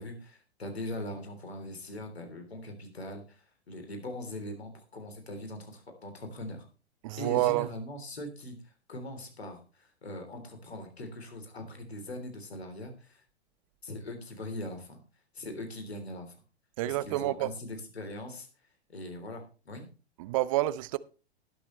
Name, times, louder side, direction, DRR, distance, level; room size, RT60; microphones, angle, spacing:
voice 1, 0.0-6.7 7.2-13.2 13.8-15.0 15.3-16.3 16.8-18.5 18.9-19.9, left 1 dB, 70° left, 3.4 m, -41 dB
voice 2, 7.0-7.7 16.8-17.5 20.2-21.0, right 17 dB, 30° right, 0.5 m, -28 dB
19.5 x 7.1 x 3.1 m
figure-of-eight pair, 105°, 33 cm